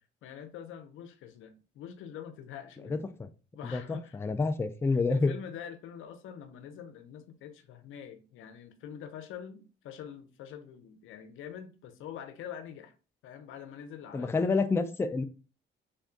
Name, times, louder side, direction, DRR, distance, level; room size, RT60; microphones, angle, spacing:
voice 1, 0.2-3.1 3.5-4.2 4.9-12.9 13.2-14.6, left 8 dB, 85° left, 0.6 m, -45 dB
voice 2, 3.7-5.3 14.1-15.2, left 3 dB, 10° left, 0.3 m, -28 dB
3.5 x 2.3 x 3.7 m
cardioid pair, 90°, 20 cm